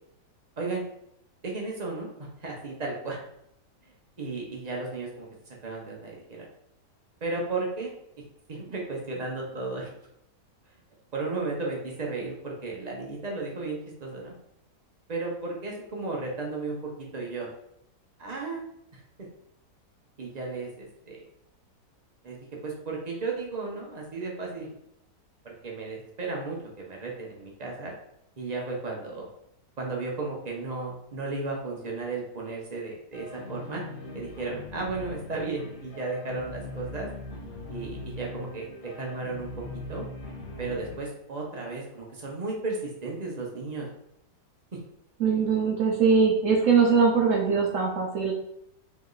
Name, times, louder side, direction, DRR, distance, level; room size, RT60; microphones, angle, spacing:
voice 1, 1.4-2.1 2.4-3.2 4.2-5.3 5.6-6.5 7.2-7.9 8.5-9.9 11.1-14.3 15.1-16.8 17.1-17.5 18.2-18.6 18.9-19.0 20.2-21.2 22.2-22.4 22.6-24.7 25.4-27.9 28.4-29.3 29.8-33.8 34.1-37.1 37.7-38.7 39.0-39.5 39.9-40.0 40.6-43.9 44.7-44.8, right 3 dB, 45° right, -1 dB, 0.5 m, -34 dB
sound 1, 33.1-41.0, left 2 dB, 50° left, 0.7 m, -41 dB
voice 2, 45.2-48.3, right 5 dB, 60° right, -1 dB, 0.9 m, -22 dB
3.4 x 3.1 x 3.9 m, 0.77 s
omnidirectional pair, 1.9 m